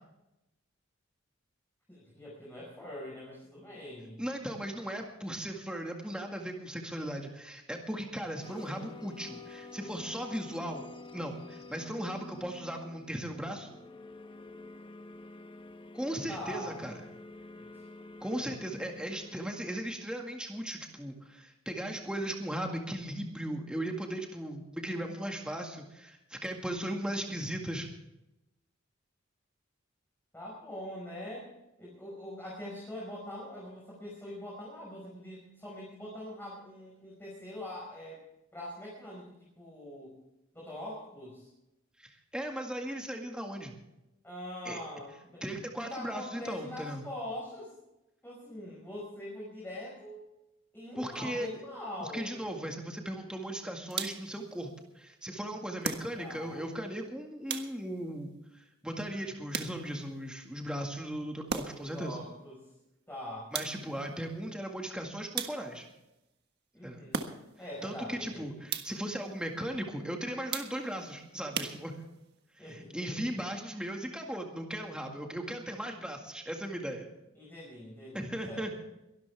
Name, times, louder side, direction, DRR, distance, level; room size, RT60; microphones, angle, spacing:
voice 1, 1.9-4.2 16.3-16.9 17.5-17.8 30.3-31.5 31.8-38.2 38.5-40.2 40.5-41.5 44.2-45.4 45.8-47.8 48.2-50.2 50.7-52.5 56.2-56.7 61.7-62.7 63.1-63.5 66.7-67.3 67.6-68.5 72.6-73.4 77.3-78.7, left 1 dB, 10° left, -5 dB, 5.4 m, -43 dB
voice 2, 4.2-10.9 11.1-13.8 15.9-17.0 18.2-27.9 42.0-43.8 44.6-44.8 45.4-47.0 51.0-51.5 52.0-62.2 63.5-65.9 66.8-67.0 67.8-71.9 72.6-77.1 78.1-78.8, right 1 dB, 5° right, 2 dB, 1.9 m, -37 dB
sound 1, 8.4-19.4, left 3 dB, 25° left, 1.1 m, -49 dB
sound 2, 53.9-54.4 55.8-56.5 57.5-58.1 59.5-60.1 61.5-62.0 63.5-64.1 65.3-65.9 67.1-67.7 68.7-69.2 70.5-71.0 71.5-72.3, right 6 dB, 55° right, 1.6 m, -38 dB
22.5 x 13.0 x 3.5 m, 0.91 s
head